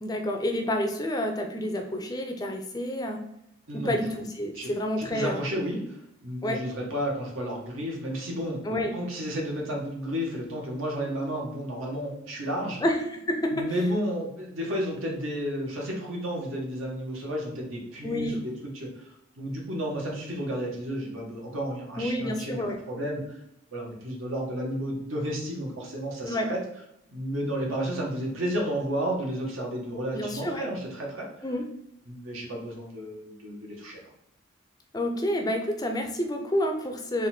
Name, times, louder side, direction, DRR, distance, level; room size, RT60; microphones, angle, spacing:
voice 1, 0.0-3.2 3.7-5.4 6.4-6.6 8.6-8.9 12.8-13.7 18.0-18.4 22.0-22.8 26.3-26.5 30.1-30.6 31.4-31.7 34.9-37.3, left 1 dB, 20° left, 3 dB, 0.4 m, -29 dB
voice 2, 3.7-4.0 4.5-4.7 5.0-12.8 13.5-23.4 23.7-26.6 27.1-31.4 32.0-34.0, equal, 80° right, -1 dB, 1.3 m, -32 dB
4.0 x 2.5 x 4.2 m, 0.80 s
head